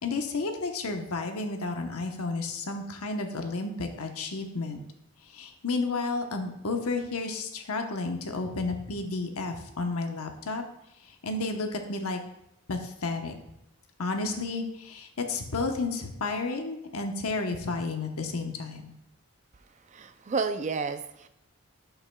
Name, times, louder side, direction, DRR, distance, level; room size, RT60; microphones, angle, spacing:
voice 1, 0.0-4.8 5.3-10.6 11.0-12.2 12.7-13.3 14.0-18.9, left 3 dB, 80° left, 4 dB, 0.9 m, -32 dB
voice 2, 19.9-21.3, right 4 dB, 30° right, 10 dB, 0.3 m, -31 dB
11.5 x 5.7 x 2.2 m, 0.84 s
head